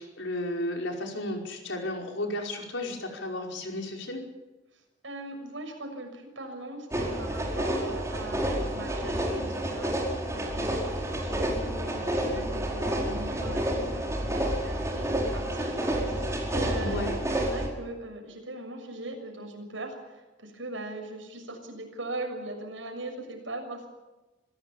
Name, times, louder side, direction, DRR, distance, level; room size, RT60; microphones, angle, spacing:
voice 1, 0.0-4.2 16.8-17.2, left 1 dB, 90° left, 1 dB, 5.1 m, -33 dB
voice 2, 5.0-17.1 17.4-23.9, right 2 dB, 85° right, 4 dB, 6.7 m, -40 dB
sound 1, 6.9-17.7, right 1 dB, 15° right, 4.7 m, -29 dB
25.5 x 16.5 x 7.2 m, 1.1 s
head